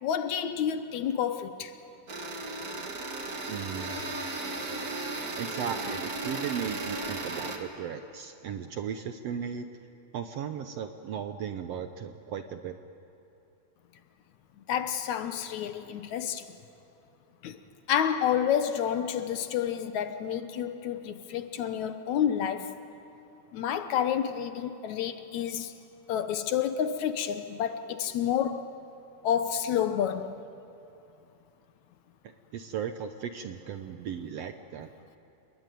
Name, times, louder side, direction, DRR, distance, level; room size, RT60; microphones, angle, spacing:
voice 1, 0.0-1.7 14.7-16.5 17.4-17.6 17.9-22.7 23.5-25.7 26.1-28.7 29.2-30.3, left 9 dB, 70° left, 2.2 m, -29 dB
sound 1, 2.1-7.6, right 2 dB, 35° right, 2.1 m, -35 dB
voice 2, 3.5-4.4 4.7-9.7 10.1-12.8 32.5-34.9, right 7 dB, 70° right, 1.6 m, -36 dB
29.0 x 21.5 x 9.2 m
omnidirectional pair, 3.7 m